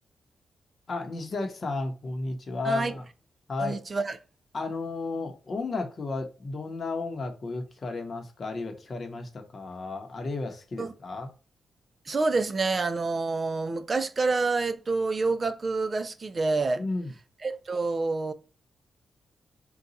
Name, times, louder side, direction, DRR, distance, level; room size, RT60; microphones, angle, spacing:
voice 1, 0.9-3.0 3.5-3.8 4.5-11.3 16.8-17.1, left 3 dB, 45° left, 0.8 m, -33 dB
voice 2, 2.6-3.0 3.6-4.2 10.8-10.9 12.1-16.8 17.4-18.3, right 3 dB, 35° right, 0.4 m, -27 dB
3.9 x 2.3 x 4.0 m
cardioid pair, 110°, 0 cm